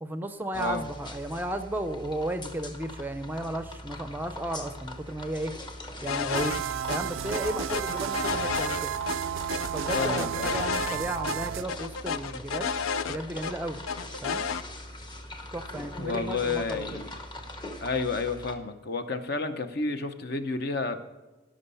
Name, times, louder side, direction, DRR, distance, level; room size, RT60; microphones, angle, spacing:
voice 1, 0.0-5.6 6.0-6.6 6.9-8.9 9.7-12.7 13.1-13.8 14.2-14.4 15.5-17.0, right 1 dB, 10° right, 9 dB, 0.5 m, -34 dB
sound 1, 0.5-18.5, left 1 dB, 20° left, 0.9 m, -42 dB
sound 2, 6.1-6.6 6.9-7.0 7.3-9.2 9.5-11.0 11.2-11.4 11.7-13.5 13.9-14.6, left 6 dB, 90° left, 0.5 m, -31 dB
sound 3, 6.3-11.6, right 9 dB, 75° right, 0.4 m, -32 dB
voice 2, 9.9-10.5 16.0-17.1 17.8-21.0, left 4 dB, 50° left, 9 dB, 0.8 m, -30 dB
16.5 x 6.3 x 5.5 m, 1.2 s
head